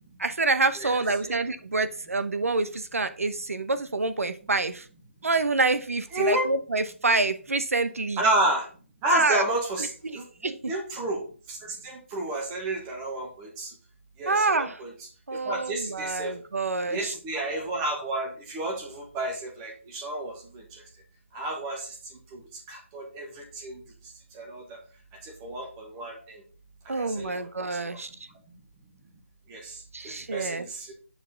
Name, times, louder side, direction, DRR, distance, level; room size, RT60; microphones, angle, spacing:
voice 1, 0.2-4.8 5.2-8.2 9.1-9.4 10.0-10.2 10.4-10.7 14.3-14.8 15.3-17.1 26.9-28.1 29.9-30.6, right 3 dB, 85° right, 11 dB, 0.9 m, -27 dB
voice 2, 0.8-1.4 6.1-6.5 8.2-8.7 9.0-11.2 11.5-13.7 14.2-14.9 15.4-16.3 16.9-20.6 21.3-21.9 22.3-22.4 22.7-23.8 24.3-24.6 25.2-26.4 27.0-27.3 27.6-28.0 29.5-29.8 30.0-30.9, right 1 dB, 10° right, 2 dB, 1.0 m, -31 dB
7.9 x 4.6 x 3.9 m, 0.40 s
hypercardioid pair, 175°, 7 cm